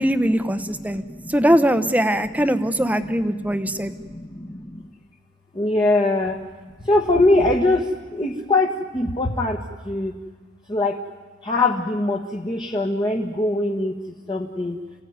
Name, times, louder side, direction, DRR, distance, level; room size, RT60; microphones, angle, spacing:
voice 1, 0.0-1.0 1.3-3.9, equal, 10° right, 11 dB, 0.9 m, -21 dB
voice 2, 0.6-1.3 2.4-2.5 3.3-4.8 5.5-6.4 6.8-10.1 10.7-11.0 11.4-14.0 14.3-14.8, left 2 dB, 25° left, 1 dB, 1.4 m, -22 dB
29.0 x 16.0 x 9.5 m, 1.5 s
head